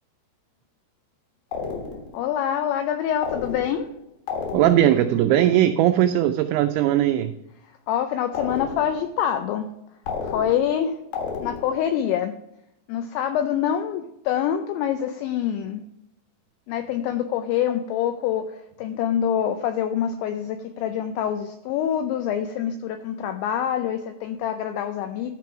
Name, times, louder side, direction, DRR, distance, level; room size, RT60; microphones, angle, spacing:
sound 1, 1.5-2.2 3.2-3.9 4.3-5.0 8.3-9.1 10.1-10.8 11.1-11.9, left 5 dB, 60° left, 2.6 m, -32 dB
voice 1, 2.1-3.9 7.7-9.7 10.2-11.0 11.4-12.4 12.9-15.8 16.7-25.3, left 9 dB, 85° left, 8 dB, 2.6 m, -26 dB
voice 2, 4.5-7.3, right 12 dB, 90° right, 8 dB, 2.6 m, -19 dB
12.0 x 4.6 x 5.9 m, 0.85 s
omnidirectional pair, 5.8 m